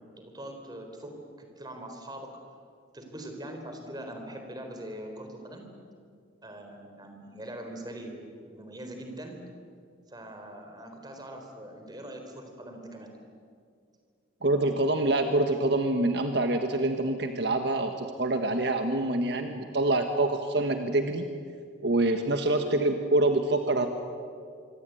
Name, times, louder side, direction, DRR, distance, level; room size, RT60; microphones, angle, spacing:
voice 1, 0.0-2.3 2.9-5.6 6.4-9.4 10.1-13.1, right 1 dB, 20° right, 4 dB, 4.1 m, -42 dB
voice 2, 14.4-21.3 21.8-23.9, right 2 dB, 60° right, 6 dB, 1.6 m, -26 dB
25.5 x 25.5 x 9.3 m, 2.2 s
head